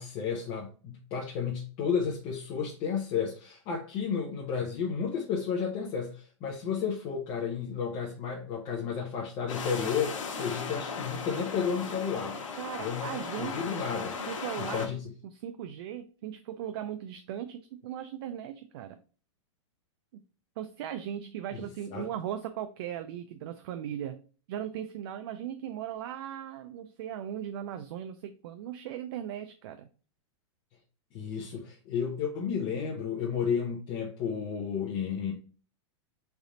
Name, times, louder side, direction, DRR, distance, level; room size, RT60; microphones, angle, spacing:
voice 1, 0.0-12.4 12.8-14.1 14.6-15.1 21.5-22.1 31.1-35.3, left 6 dB, 30° left, 0.7 m, -32 dB
sound 1, 9.5-14.9, left 5 dB, 90° left, 0.9 m, -37 dB
voice 2, 12.6-13.6 13.9-14.9 15.2-19.0 20.6-24.2 24.5-29.9, right 10 dB, 50° right, 0.4 m, -38 dB
3.3 x 2.4 x 4.0 m
supercardioid pair, 155°, 16 cm